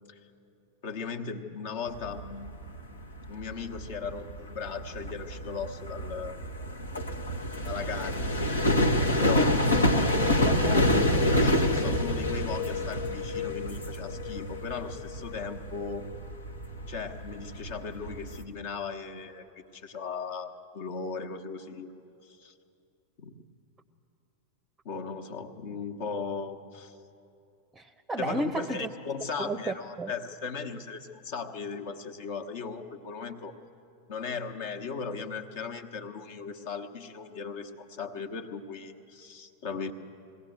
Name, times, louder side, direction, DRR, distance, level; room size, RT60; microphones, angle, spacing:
voice 1, 0.8-2.6 3.3-6.4 7.6-9.5 11.2-16.1 16.9-21.9 22.2-22.5 23.2-23.3 24.8-27.0 28.2-33.5 34.1-39.9, left 5 dB, 55° left, 5 dB, 1.3 m, -37 dB
sound 1, 1.9-18.4, left 1 dB, 75° left, 1.2 m, -28 dB
voice 2, 9.7-11.3 27.8-28.9 29.4-30.1, right 2 dB, 10° right, 10 dB, 0.7 m, -34 dB
21.5 x 17.0 x 7.9 m, 2.7 s
figure-of-eight pair, 90°, 0 cm